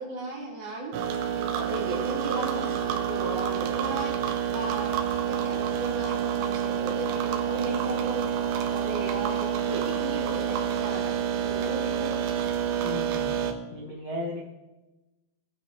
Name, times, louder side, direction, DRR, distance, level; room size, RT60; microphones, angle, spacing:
voice 1, 0.0-8.3 8.7-11.2 11.4-12.2, right 1 dB, 50° right, -4 dB, 4.4 m, -36 dB
sound 1, 0.9-13.5, right 8 dB, 75° right, 2.9 m, -28 dB
voice 2, 12.8-14.4, left 2 dB, 75° left, -4 dB, 1.4 m, -36 dB
20.5 x 8.8 x 3.1 m, 1.1 s
omnidirectional pair, 5.8 m